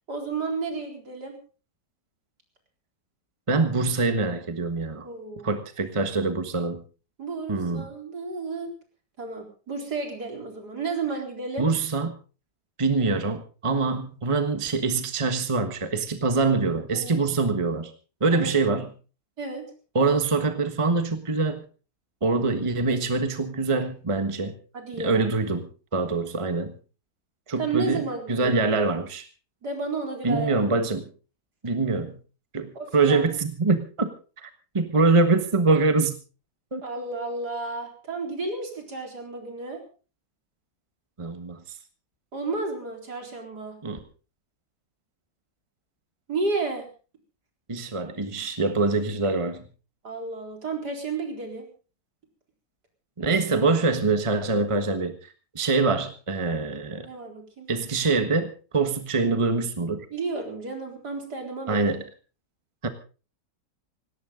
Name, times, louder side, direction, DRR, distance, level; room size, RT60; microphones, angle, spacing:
voice 1, 0.1-1.4 5.0-5.6 7.2-8.7 9.2-11.7 16.9-17.2 18.3-18.7 19.4-19.7 24.7-25.3 27.6-28.8 29.6-30.6 32.7-33.2 36.8-39.8 42.3-43.8 46.3-46.9 50.0-51.7 57.0-57.7 60.1-61.9, right 3 dB, 70° right, 2 dB, 4.7 m, -32 dB
voice 2, 3.5-5.1 5.4-6.8 7.5-7.9 11.6-12.1 12.8-17.9 18.2-18.9 19.9-21.7 22.2-24.5 25.0-26.8 27.5-29.3 30.2-31.1 31.6-32.2 32.5-34.1 34.4-34.5 34.7-36.2 36.7-36.8 41.2-41.6 43.8-44.0 47.7-49.6 53.2-57.1 57.7-60.1 61.7-62.0 62.8-62.9, right 3 dB, 20° right, 8 dB, 1.4 m, -24 dB
18.5 x 17.5 x 3.8 m, 0.36 s
omnidirectional pair, 1.8 m